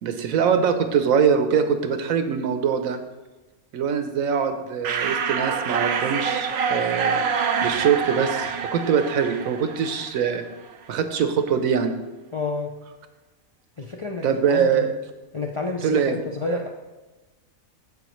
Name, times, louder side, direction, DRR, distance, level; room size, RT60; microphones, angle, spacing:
voice 1, 0.0-3.0 3.7-7.2 7.6-10.4 10.9-11.9 14.2-14.9 15.8-16.2, right 7 dB, 80° right, 8 dB, 1.2 m, -23 dB
sound 1, 4.8-10.4, right 6 dB, 60° right, 0.8 m, -26 dB
voice 2, 12.3-12.7 13.8-14.9 15.3-16.7, left 3 dB, 55° left, 0 dB, 0.3 m, -29 dB
13.5 x 5.1 x 3.1 m, 1.1 s
omnidirectional pair, 1.4 m